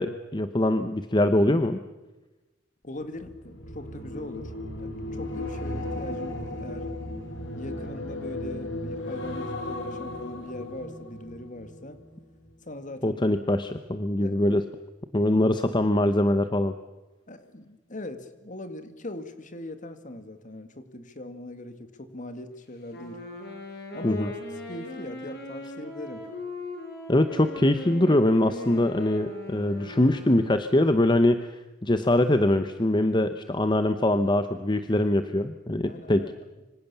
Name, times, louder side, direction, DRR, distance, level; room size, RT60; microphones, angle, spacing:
voice 1, 0.0-1.8 13.0-14.6 15.1-16.7 24.0-24.3 27.1-36.3, left 1 dB, 25° left, 9 dB, 1.0 m, -23 dB
voice 2, 2.8-6.9 7.5-12.0 12.6-13.3 14.2-14.4 17.3-23.2 23.9-24.3 24.7-26.3 35.8-36.3, left 1 dB, 45° left, 10 dB, 2.2 m, -40 dB
sound 1, 3.2-12.5 12.9-13.2, left 1 dB, 85° left, 5.1 m, -36 dB
Wind instrument woodwind instrument, 22.9-30.7, left 2 dB, 60° left, 5.9 m, -40 dB
26.0 x 25.5 x 7.1 m, 1.1 s
head